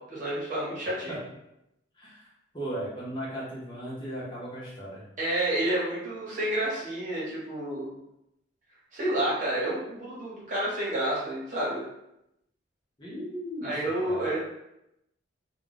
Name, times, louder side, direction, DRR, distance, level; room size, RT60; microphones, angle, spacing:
voice 1, 0.1-1.2 5.2-7.9 8.9-11.8 13.6-14.4, right 1 dB, 40° right, -7 dB, 1.0 m, -29 dB
voice 2, 2.0-2.3 2.5-5.0 13.0-14.4, right 1 dB, 25° left, -7 dB, 0.8 m, -37 dB
2.3 x 2.3 x 3.8 m, 0.86 s
head